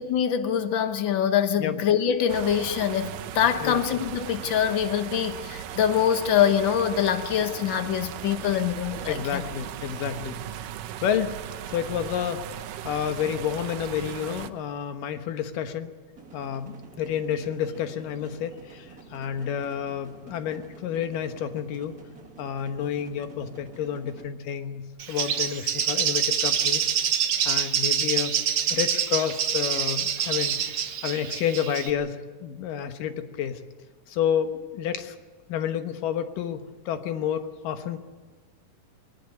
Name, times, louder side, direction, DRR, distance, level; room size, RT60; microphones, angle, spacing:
voice 1, 0.0-9.4, left 9 dB, 60° left, 8 dB, 1.2 m, -24 dB
sound 1, 2.3-14.5, right 11 dB, 80° right, 2.5 m, -37 dB
voice 2, 9.1-10.4 11.0-11.4 11.7-12.6 12.8-15.9 16.3-21.9 22.4-26.9 27.4-28.4 28.7-30.6 31.0-33.6 34.1-35.2 35.5-38.0, left 9 dB, 85° left, 8 dB, 2.9 m, -30 dB
sound 2, 16.2-24.2, right 4 dB, 30° right, 2.2 m, -48 dB
Bird, 25.0-31.9, right 8 dB, 55° right, 1.8 m, -26 dB
21.5 x 18.5 x 9.5 m, 1.4 s
omnidirectional pair, 3.7 m